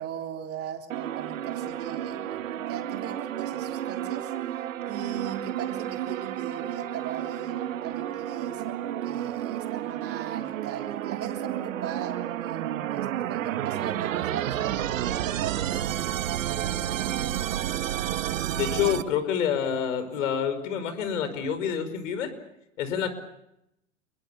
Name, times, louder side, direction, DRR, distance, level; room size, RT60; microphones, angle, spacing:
voice 1, 0.0-17.7, right 9 dB, 35° right, 3 dB, 3.5 m, -39 dB
sound 1, 0.9-19.0, right 12 dB, 80° right, 1.3 m, -31 dB
voice 2, 18.5-22.3 22.8-23.1, left 8 dB, 70° left, 11 dB, 5.4 m, -27 dB
28.0 x 22.5 x 7.0 m, 0.82 s
hypercardioid pair, 100°, 39 cm